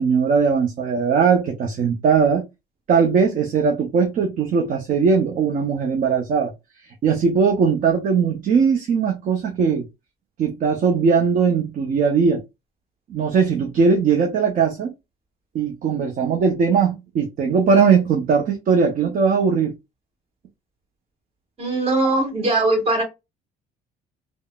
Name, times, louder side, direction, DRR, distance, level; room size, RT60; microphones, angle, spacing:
voice 1, 0.0-2.4 2.9-6.5 7.0-9.9 10.4-12.4 13.1-14.9 15.5-19.7, right 5 dB, 50° right, 0.6 m, -19 dB
voice 2, 21.6-23.0, right 2 dB, 35° right, 1.5 m, -20 dB
3.5 x 2.0 x 2.2 m
cardioid pair, 110°, 17 cm